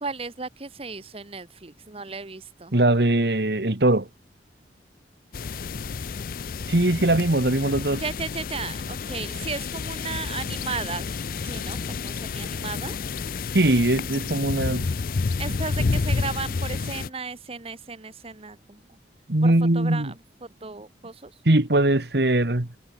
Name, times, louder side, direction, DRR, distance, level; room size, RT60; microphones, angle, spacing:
voice 1, 0.0-2.7 7.9-11.1 11.4-13.0 15.4-19.0 19.4-20.1 20.4-21.4, right 4 dB, 35° right, 1.0 m, -35 dB
voice 2, 2.7-4.1 6.7-8.0 13.5-14.9 19.3-20.1 21.5-22.7, right 1 dB, 65° right, 1.7 m, -21 dB
sound 1, 5.3-17.1, left 4 dB, 50° left, 0.5 m, -30 dB
head